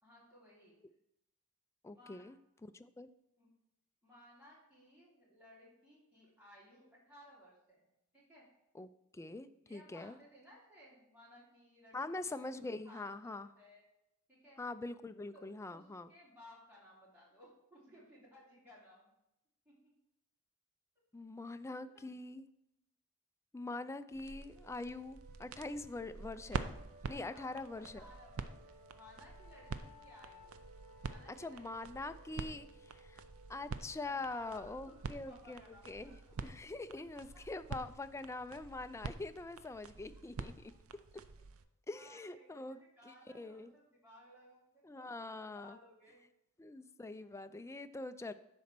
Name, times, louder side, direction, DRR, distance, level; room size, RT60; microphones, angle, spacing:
voice 1, 0.0-0.8 1.9-2.2 3.4-3.5 4.0-7.9 8.1-8.5 9.6-13.8 14.3-14.6 15.3-19.1 19.6-19.9 21.9-22.1 27.1-30.5 31.0-31.7 32.0-32.6 34.0-36.3 37.3-37.4 40.1-40.5 41.9-46.2 47.2-47.3, left 1 dB, 5° right, -8 dB, 3.1 m, -60 dB
voice 2, 1.8-2.4 2.7-3.1 8.7-10.2 11.9-13.5 14.6-16.1 21.1-22.4 23.5-26.7 27.1-28.0 31.4-33.2 33.5-35.6 35.9-36.2 36.4-40.5 41.9-42.8 43.0-43.7 44.8-45.8 46.6-48.3, left 2 dB, 15° left, 10 dB, 0.3 m, -44 dB
sound 1, 24.1-41.6, right 4 dB, 65° right, 0.6 m, -47 dB
sound 2, 24.5-39.8, right 1 dB, 40° right, 2.1 m, -61 dB
10.5 x 4.2 x 6.0 m, 0.85 s
head